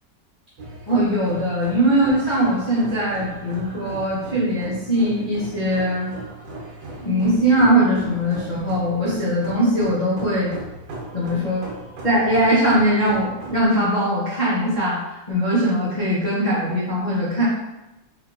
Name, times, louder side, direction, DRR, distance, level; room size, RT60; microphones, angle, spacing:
sound 1, 0.6-13.7, right 2 dB, 75° right, 1.4 m, -37 dB
voice 1, 0.9-6.1 7.0-10.5 11.1-11.7 12.0-17.4, right 1 dB, 55° left, -11 dB, 0.5 m, -21 dB
3.4 x 2.8 x 2.4 m, 0.97 s
omnidirectional pair, 2.0 m